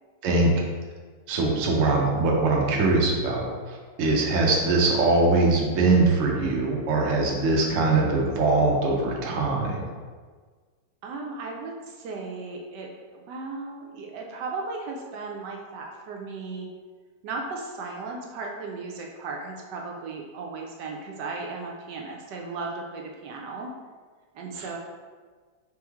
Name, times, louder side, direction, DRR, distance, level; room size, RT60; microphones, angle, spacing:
voice 1, 1.3-3.4 4.0-9.8 24.6-24.8, right 3 dB, 60° right, -1 dB, 0.9 m, -22 dB
voice 2, 11.0-16.7 17.2-23.7 24.3-24.8, right 3 dB, 75° right, 0 dB, 1.2 m, -36 dB
3.6 x 3.1 x 3.4 m, 1.5 s
omnidirectional pair, 1.9 m